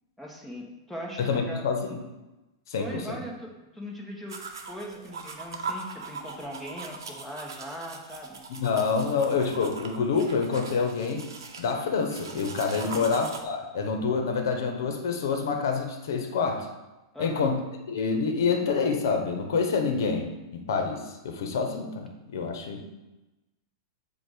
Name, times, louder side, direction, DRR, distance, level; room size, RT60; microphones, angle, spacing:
voice 1, 0.2-1.6 2.8-4.4 4.7-8.4 12.8-13.1 17.1-17.6, equal, 5° left, -2 dB, 1.2 m, -40 dB
voice 2, 1.2-2.0 2.7-3.2 8.5-11.3 11.6-16.7 17.2-17.6 17.9-23.0, left 5 dB, 70° left, 4 dB, 1.0 m, -27 dB
sound 1, 4.3-13.4, right 4 dB, 85° right, 0.8 m, -41 dB
7.5 x 2.5 x 5.1 m, 1.0 s
hypercardioid pair, 120°, 2 cm